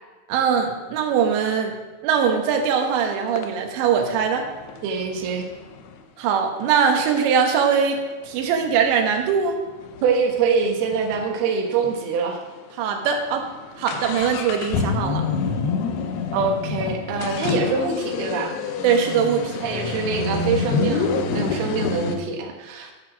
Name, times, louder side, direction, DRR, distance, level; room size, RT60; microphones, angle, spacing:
voice 1, 0.3-1.8 2.0-4.5 6.2-8.0 8.2-9.6 12.8-13.5 13.8-15.3 18.8-19.6, right 7 dB, 90° right, 4 dB, 3.3 m, -21 dB
sound 1, 2.8-2.9 3.4-6.0 6.6-6.7 7.1-7.2 7.6-11.3 11.6-11.7 11.8-12.0 12.6-12.7 13.0-22.2, left 5 dB, 75° left, 2.8 m, -28 dB
voice 2, 4.8-5.4 10.0-12.4 16.3-18.5 19.6-22.9, right 5 dB, 70° right, 2 dB, 3.1 m, -24 dB
10.5 x 8.4 x 6.1 m, 1.2 s
omnidirectional pair, 5.0 m